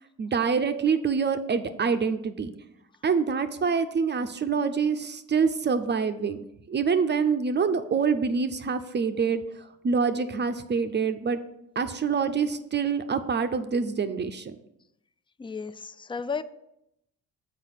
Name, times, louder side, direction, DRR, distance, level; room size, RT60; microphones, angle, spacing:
voice 1, 0.2-2.5 3.0-6.4 6.7-9.4 9.8-11.4 11.8-14.5, right 5 dB, 35° right, 9 dB, 0.5 m, -26 dB
voice 2, 15.4-16.4, left 5 dB, 15° left, 13 dB, 0.3 m, -33 dB
6.4 x 4.8 x 5.9 m, 0.83 s
cardioid pair, 95°, 33 cm